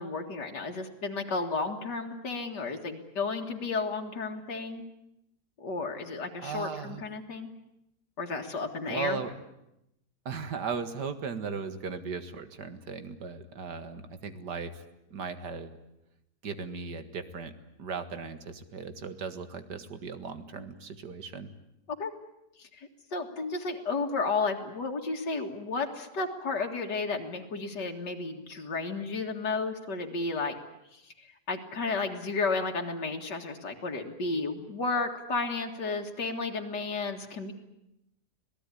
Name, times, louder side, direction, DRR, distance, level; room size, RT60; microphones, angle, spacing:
voice 1, 0.0-4.8 5.6-7.5 8.2-9.2 22.0-22.1 22.6-30.6 30.9-37.5, left 3 dB, 85° left, 2 dB, 2.6 m, -33 dB
voice 2, 6.4-7.0 8.9-9.3 10.3-14.8 15.1-15.8 16.4-17.5 17.8-21.5, right 5 dB, 75° right, 10 dB, 2.3 m, -37 dB
26.5 x 18.5 x 9.9 m, 0.86 s
omnidirectional pair, 1.8 m